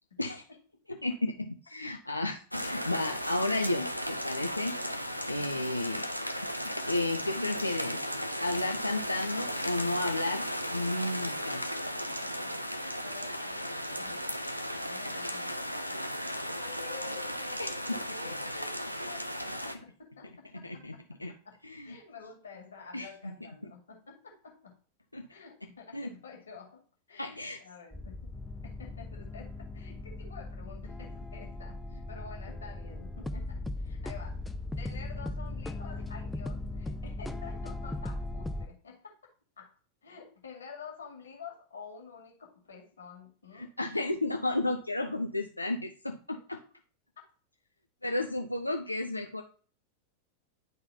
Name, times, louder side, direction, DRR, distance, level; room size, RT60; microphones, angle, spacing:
voice 1, 0.9-4.7 5.3-6.1 6.6-8.0 8.4-10.4 10.7-11.7 17.6-18.0 18.2-18.3 20.5-20.9 21.2-21.3 21.6-22.0 22.9-23.3 23.6-23.7 25.1-25.3 25.9-26.1 27.2-27.6 43.5-46.6 48.0-49.4, left 2 dB, 85° left, 4 dB, 0.4 m, -33 dB
sound 1, 2.5-19.7, equal, 90° right, 0.5 m, -35 dB
voice 2, 12.1-14.3 14.9-16.0 16.3-21.0 21.3-21.6 21.8-24.8 25.3-26.8 27.1-28.3 28.6-34.4 34.8-39.3 39.6-39.8 40.0-43.7, left 5 dB, 70° left, 1 dB, 1.9 m, -49 dB
sound 2, 27.9-38.7, left 2 dB, 5° left, 0.4 m, -38 dB
10.5 x 3.9 x 2.7 m, 0.41 s
figure-of-eight pair, 90°, 0 cm